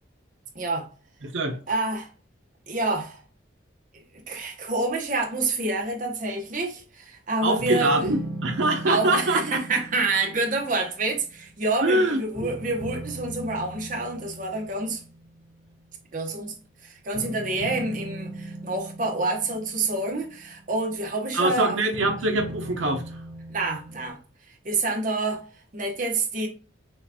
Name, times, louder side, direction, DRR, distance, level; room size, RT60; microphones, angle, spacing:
voice 1, 0.5-0.9 1.7-2.1 2.7-3.2 4.1-8.1 8.9-15.0 16.1-16.5 16.8-21.8 23.5-24.2 24.6-25.5 25.7-26.5, right 3 dB, 45° right, 0.9 m, -27 dB
voice 2, 7.4-9.6 11.8-12.5 21.3-23.0, right 2 dB, 75° right, 0.7 m, -24 dB
sound 1, 7.6-11.9 12.3-15.6 17.1-21.1 21.9-24.1, right 1 dB, 45° left, 1.4 m, -39 dB
6.3 x 2.4 x 2.7 m
head